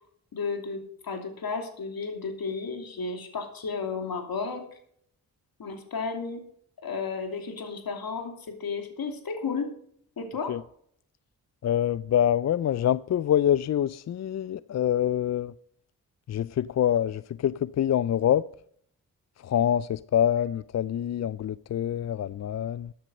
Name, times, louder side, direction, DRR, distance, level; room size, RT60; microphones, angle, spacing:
voice 1, 0.3-4.7 5.6-6.5 6.8-9.7 10.2-10.6, left 4 dB, 65° left, 2.8 m, -33 dB
voice 2, 11.6-15.5 16.3-18.4 19.4-22.9, left 10 dB, 45° left, 0.4 m, -25 dB
13.5 x 9.4 x 5.3 m
supercardioid pair, 45°, 38 cm